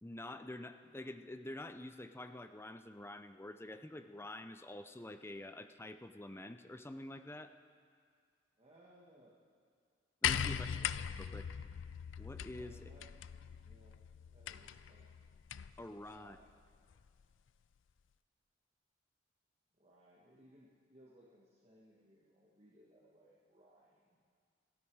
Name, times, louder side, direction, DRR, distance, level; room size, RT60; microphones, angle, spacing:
voice 1, 0.0-7.5 10.2-11.5 12.2-12.9 15.8-16.4, left 1 dB, 15° left, 9 dB, 0.5 m, -48 dB
voice 2, 8.6-9.3 12.5-13.1 13.6-14.0 14.3-15.1 16.0-16.5 19.8-24.2, right 1 dB, 35° right, -6 dB, 1.7 m, -64 dB
sound 1, 10.2-15.8 16.9-17.0, left 8 dB, 90° left, 0.4 m, -39 dB
28.5 x 9.7 x 4.7 m, 2.1 s
head